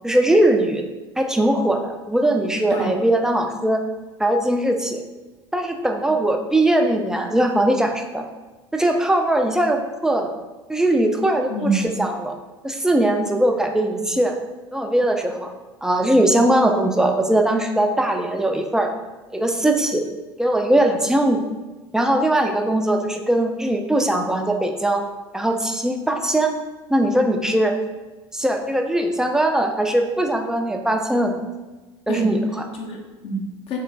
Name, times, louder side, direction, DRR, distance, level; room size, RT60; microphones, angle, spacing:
voice 1, 0.0-0.8 1.2-3.8 4.2-5.0 5.5-8.2 8.7-10.3 10.7-12.3 12.6-14.4 14.7-15.5 15.8-18.9 19.3-20.0 20.4-21.4 21.9-25.0 25.3-26.5 26.9-27.8 28.3-31.4 32.1-32.6, right 1 dB, 5° right, 4 dB, 0.5 m, -20 dB
voice 2, 11.5-12.0 32.1-32.4 32.8-33.8, right 2 dB, 45° left, 0 dB, 0.9 m, -26 dB
3.6 x 3.2 x 4.0 m, 1.2 s
figure-of-eight pair, 65°, 14 cm